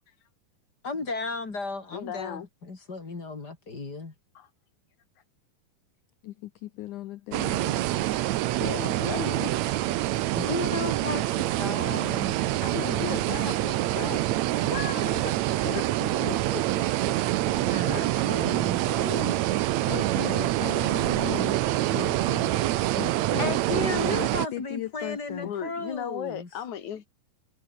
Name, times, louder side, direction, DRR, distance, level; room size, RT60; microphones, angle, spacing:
voice 1, 0.8-4.1 10.3-11.2 11.5-12.4 12.7-13.1 17.7-18.8 23.4-26.5, left 3 dB, 30° left, 3.3 m, -34 dB
voice 2, 1.9-2.5 4.4-4.5 8.6-9.5 12.6-15.4 15.7-15.9 16.3-16.8 17.9-18.2 18.8-19.4 25.4-27.0, left 9 dB, 55° left, 3.5 m, -36 dB
voice 3, 6.2-7.8 14.6-14.7 15.0-15.2 15.6-16.4 17.4-17.7 19.9-21.6 21.9-22.5 23.0-25.5, left 15 dB, 70° left, 2.1 m, -37 dB
sound 1, 7.3-24.5, right 15 dB, 85° right, 1.6 m, -26 dB
omnidirectional pair, 4.3 m